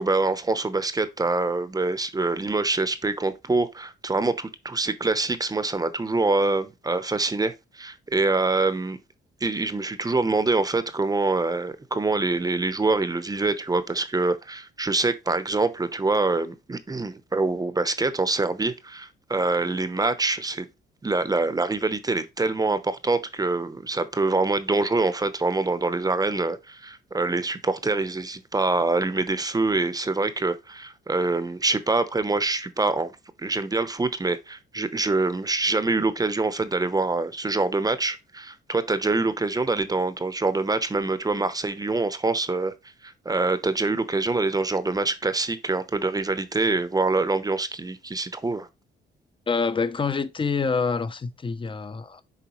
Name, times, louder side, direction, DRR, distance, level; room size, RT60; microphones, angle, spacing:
voice 1, 0.0-9.0 9.4-20.7 21.0-33.1 33.4-42.7 43.0-48.7, right 3 dB, 20° right, 0.8 m, -25 dB
voice 2, 49.5-52.2, left 5 dB, 25° left, 0.7 m, -26 dB
7.1 x 4.6 x 3.1 m
cardioid pair, 90°, 20 cm